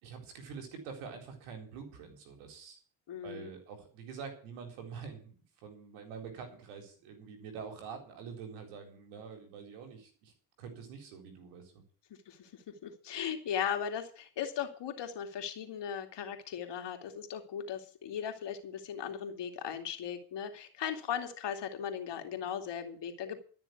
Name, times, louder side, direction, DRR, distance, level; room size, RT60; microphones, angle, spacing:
voice 1, 0.0-2.8 3.2-11.8, right 6 dB, 85° right, 4 dB, 4.2 m, -46 dB
voice 2, 3.1-3.5 12.3-23.4, left 8 dB, 60° left, 5 dB, 2.7 m, -38 dB
13.0 x 6.8 x 9.3 m, 0.43 s
supercardioid pair, 70°, 48 cm